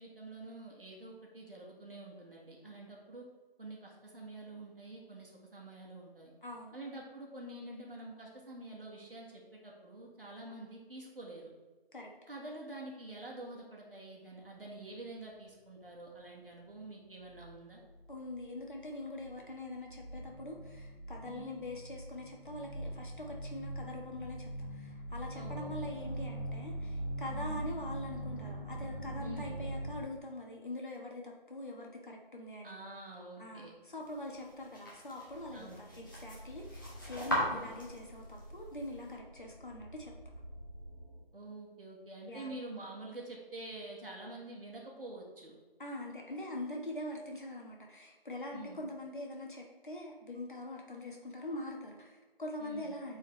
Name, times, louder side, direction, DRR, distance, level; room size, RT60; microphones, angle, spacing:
voice 1, 0.0-3.2 3.6-6.3 6.7-11.5 12.3-17.8 21.2-21.5 25.3-25.8 27.3-27.7 29.2-29.6 32.6-33.7 35.5-35.8 37.4-37.7 41.3-45.6 48.5-48.9 52.6-53.0, right 2 dB, 65° right, -2 dB, 1.8 m, -47 dB
voice 2, 6.4-6.7 11.9-12.1 18.1-32.7 33.4-40.1 42.3-42.6 45.8-53.2, left 1 dB, 55° left, 0 dB, 1.4 m, -43 dB
sound 1, 17.4-17.5 17.9-18.8 19.0-29.9, right 1 dB, 75° left, 2.2 m, -42 dB
sound 2, 34.0-39.1, equal, 20° left, 1.1 m, -40 dB
sound 3, 35.3-41.2, equal, 25° right, 1.5 m, -51 dB
7.9 x 4.5 x 3.3 m, 1.3 s
figure-of-eight pair, 170°, 30 cm